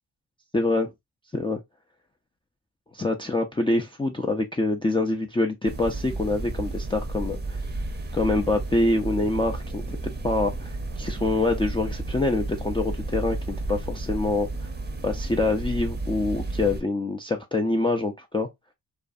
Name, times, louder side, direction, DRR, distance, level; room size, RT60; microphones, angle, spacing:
voice 1, 0.5-0.9 1.3-1.6 2.9-7.6 8.1-10.0 10.2-13.4 13.7-14.5 15.0-18.5, left 2 dB, 15° left, 0.4 m, -25 dB
sound 1, 5.6-16.8, right 2 dB, 25° right, 0.6 m, -32 dB
2.5 x 2.3 x 2.4 m
cardioid pair, 60°, 39 cm